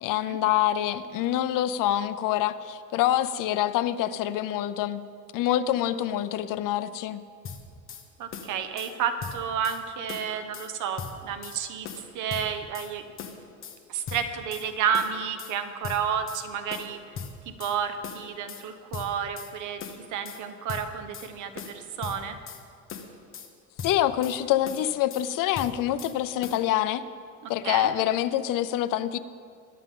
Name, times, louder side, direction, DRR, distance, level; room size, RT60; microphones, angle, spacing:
voice 1, 0.0-5.1 5.3-7.2 23.8-27.0 27.5-29.2, left 12 dB, 75° left, 12 dB, 0.7 m, -26 dB
sound 1, 7.4-8.0 8.3-8.9 9.2-9.8 10.1-10.7 11.0-11.6 11.8-12.9 13.2-13.8 14.1-14.7 14.9-15.5 15.8-16.4 16.7-17.8 18.0-18.6 18.9-19.5 19.8-20.4 20.7-21.3 21.6-22.6 22.9-23.5 23.8-24.4 24.6-25.3 25.5-26.1 26.4-26.6, left 6 dB, 40° left, 1.4 m, -39 dB
voice 2, 8.2-11.9 12.1-13.0 13.9-17.0 17.6-19.8 20.1-22.4 27.4-27.9, right 7 dB, 65° right, 8 dB, 1.2 m, -31 dB
22.0 x 11.5 x 3.8 m, 2.2 s
cardioid pair, 155°, 32 cm